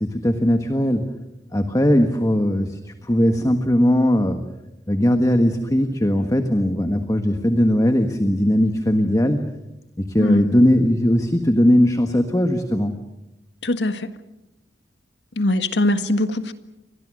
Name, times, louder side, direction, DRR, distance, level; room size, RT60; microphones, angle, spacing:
voice 1, 0.0-1.1 1.5-4.4 4.9-9.4 10.0-12.9, equal, 20° left, 1.5 m, -19 dB
voice 2, 13.6-14.1 15.4-16.5, left 1 dB, 90° left, 1.7 m, -21 dB
29.5 x 24.5 x 6.5 m
head